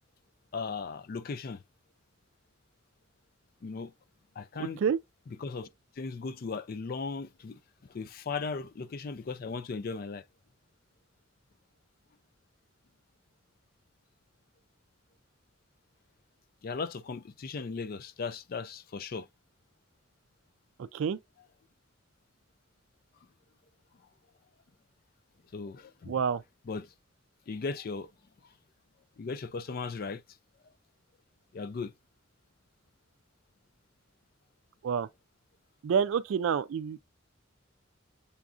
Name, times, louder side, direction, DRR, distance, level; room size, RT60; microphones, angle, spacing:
voice 1, 0.5-1.6 3.6-3.9 4.4-4.8 5.4-5.7 6.0-7.6 7.9-10.2 16.6-19.3 25.5-26.2 26.7-26.9 27.5-28.1 29.2-30.2 31.5-31.9, left 4 dB, 45° left, 0.3 m, -37 dB
voice 2, 20.8-21.2 26.1-26.4 34.8-35.1 35.8-37.0, right 7 dB, 70° right, 0.3 m, -28 dB
6.9 x 2.4 x 2.4 m
head